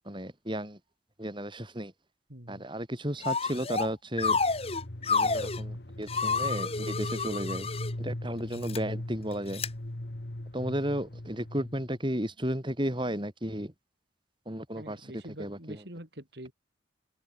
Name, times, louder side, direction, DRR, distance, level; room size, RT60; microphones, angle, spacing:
voice 1, 0.1-0.8 1.2-1.9 2.5-4.4 5.1-7.7 8.0-9.6 10.5-13.7 14.5-15.1 15.4-15.8, equal, 25° right, 5.9 m, -33 dB
voice 2, 2.3-2.7 14.7-16.5, right 1 dB, 60° right, 6.2 m, -45 dB
sound 1, 3.2-3.9 4.2-5.6 6.1-7.9 8.5-8.8 9.5-9.7, left 4 dB, 30° left, 2.3 m, -29 dB
sound 2, 4.2-12.0, left 1 dB, 60° left, 1.7 m, -39 dB
head